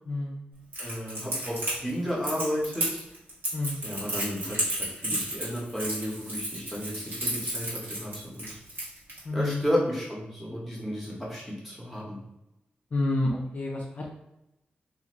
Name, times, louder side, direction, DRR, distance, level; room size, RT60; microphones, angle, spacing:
voice 1, 0.1-0.4 3.5-3.8 9.2-9.6 12.9-14.1, left 2 dB, 45° left, -2 dB, 0.5 m, -29 dB
Crackle, 0.7-9.2, right 1 dB, 75° right, 1.3 m, -32 dB
voice 2, 0.8-3.0 3.8-8.6 9.3-12.2, equal, 5° right, -5 dB, 0.9 m, -33 dB
2.5 x 2.5 x 3.0 m, 0.90 s
wide cardioid pair, 130°, 4 cm